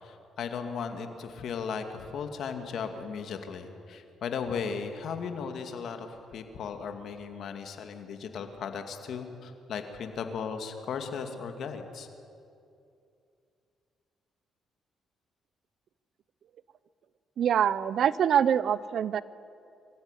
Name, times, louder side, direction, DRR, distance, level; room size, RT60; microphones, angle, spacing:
voice 1, 0.0-6.1 6.3-12.1, left 6 dB, 65° left, 6 dB, 2.5 m, -36 dB
voice 2, 17.4-19.2, right 9 dB, 65° right, 18 dB, 0.7 m, -24 dB
25.0 x 15.0 x 10.0 m, 2.5 s
cardioid pair, 90°, 0 cm